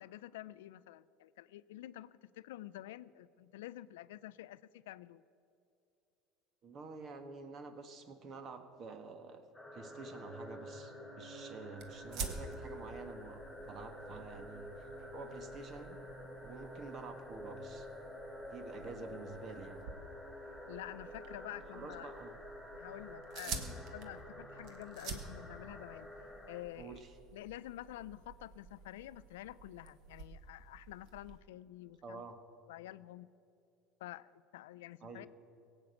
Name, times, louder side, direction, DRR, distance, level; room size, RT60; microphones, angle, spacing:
voice 1, 0.0-5.2 20.7-22.1 22.8-26.1 26.5-27.0 27.3-32.2 32.7-33.3 34.0-35.3, left 14 dB, 85° left, 17 dB, 0.4 m, -49 dB
voice 2, 6.6-9.4 9.7-14.9 15.1-16.0 16.4-17.9 18.5-19.8 21.7-22.3 23.5-23.7 26.8-27.1 32.0-32.4 35.0-35.3, right 4 dB, 45° right, 8 dB, 1.5 m, -49 dB
sound 1, 9.5-26.6, left 1 dB, 5° left, 3.0 m, -49 dB
sound 2, 11.8-31.4, right 4 dB, 60° right, 1.6 m, -50 dB
17.0 x 8.2 x 8.3 m, 2.6 s
supercardioid pair, 100°, 0 cm